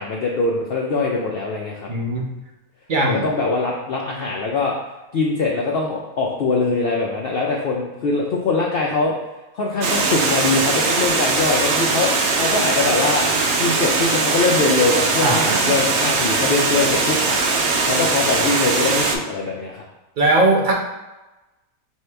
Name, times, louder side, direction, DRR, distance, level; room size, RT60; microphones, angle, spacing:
voice 1, 0.0-1.9 3.0-4.7 5.1-9.1 9.5-13.3 13.6-17.4 17.8-19.8, left 3 dB, 80° left, -1 dB, 0.5 m, -22 dB
voice 2, 1.9-2.3 2.9-3.2 15.2-15.8 20.2-20.7, right 2 dB, 55° right, -1 dB, 0.5 m, -19 dB
Water, 9.8-19.2, right 3 dB, 80° right, 1.0 m, -20 dB
4.5 x 2.7 x 3.3 m, 1.1 s
omnidirectional pair, 1.5 m